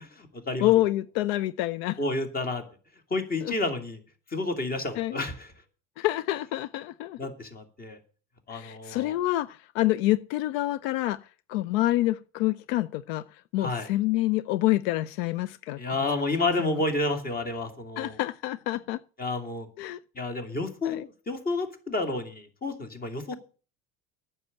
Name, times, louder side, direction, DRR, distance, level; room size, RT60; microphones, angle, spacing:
voice 1, 0.0-0.7 2.0-2.6 3.1-4.0 4.3-5.5 7.2-8.0 8.5-9.2 13.6-13.9 15.8-18.2 19.2-19.7 20.2-23.4, left 2 dB, 30° left, 2.7 m, -30 dB
voice 2, 0.6-2.0 3.4-3.6 5.0-5.2 6.0-7.2 8.5-11.2 11.5-13.2 13.5-16.0 16.6-16.7 18.0-19.0 19.8-20.0 20.8-21.1, left 16 dB, 85° left, 0.6 m, -27 dB
9.7 x 6.8 x 8.7 m
supercardioid pair, 105°, 30 cm